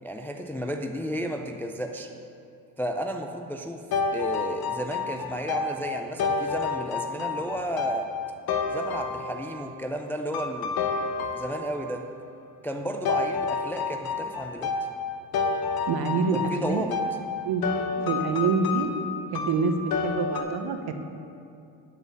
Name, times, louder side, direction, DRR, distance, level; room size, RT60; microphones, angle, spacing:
voice 1, 0.0-2.1 2.8-3.9 4.1-8.1 8.7-10.8 11.3-12.1 12.6-14.8 16.3-17.0, equal, 5° left, 4 dB, 0.3 m, -33 dB
sound 1, 3.9-9.7 10.3-12.0 13.0-20.4, left 4 dB, 55° left, 1.0 m, -29 dB
voice 2, 15.9-16.8 17.4-17.7 18.0-18.9 19.3-20.9, right 4 dB, 60° right, 6 dB, 0.9 m, -26 dB
9.5 x 4.9 x 6.4 m, 2.6 s
cardioid pair, 100°, 42 cm